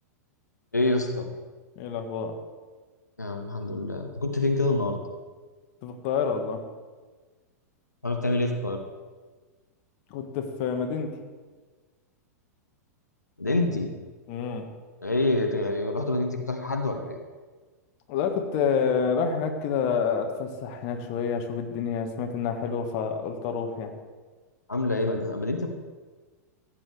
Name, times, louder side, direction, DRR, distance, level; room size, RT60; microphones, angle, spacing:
voice 1, 0.7-1.3 3.2-5.0 8.0-8.8 13.4-13.9 15.0-17.2 24.7-25.7, left 2 dB, 85° left, 4 dB, 1.1 m, -26 dB
voice 2, 1.8-2.3 5.8-6.6 10.1-11.1 14.3-14.7 18.1-23.9, left 6 dB, 40° left, 5 dB, 1.4 m, -28 dB
15.0 x 8.9 x 3.4 m, 1.4 s
figure-of-eight pair, 100°, 9 cm